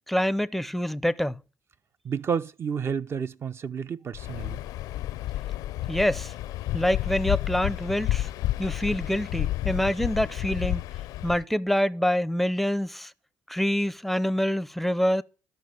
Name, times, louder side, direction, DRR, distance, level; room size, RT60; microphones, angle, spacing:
voice 1, 0.1-1.4 5.9-6.3 6.7-8.3 8.6-10.8 11.2-13.1 13.5-15.2, equal, ahead, 0.6 m, -26 dB
voice 2, 2.0-4.6, right 6 dB, 40° right, 0.7 m, -30 dB
Waves surf, 4.1-11.4, left 14 dB, 75° left, 0.5 m, -31 dB
13.0 x 5.5 x 7.8 m
supercardioid pair, 70°, 6 cm